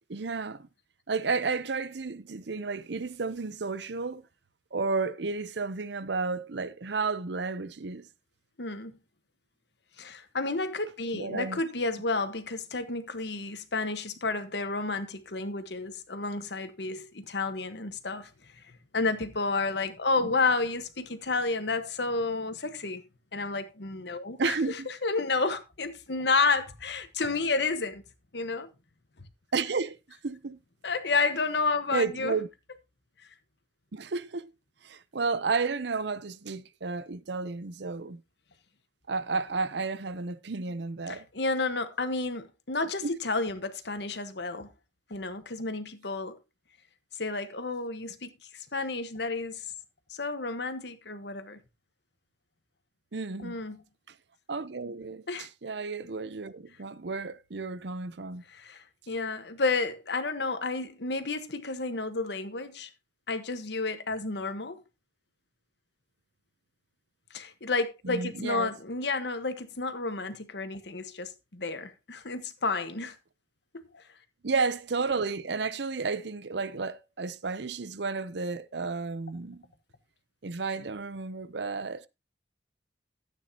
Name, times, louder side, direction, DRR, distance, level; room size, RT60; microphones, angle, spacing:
voice 1, 0.1-0.7 1.1-4.2 4.7-8.1 11.1-11.6 20.2-20.3 24.4-24.9 29.5-30.6 31.9-32.5 33.9-34.5 34.8-38.2 39.1-41.3 43.0-43.2 53.1-53.6 54.5-58.4 68.0-68.7 74.4-79.6 80.4-82.1, right 4 dB, 70° right, 0.7 m, -32 dB
voice 2, 8.6-9.0 10.0-18.3 18.9-23.0 23.3-24.6 25.0-28.0 28.3-28.7 30.8-32.4 41.1-44.7 45.1-46.4 47.2-48.3 48.7-49.6 50.1-51.6 53.4-53.8 55.3-55.5 58.5-62.9 63.3-64.8 67.3-73.1 73.7-74.0, left 3 dB, 65° left, 1.2 m, -31 dB
13.0 x 9.0 x 2.8 m
head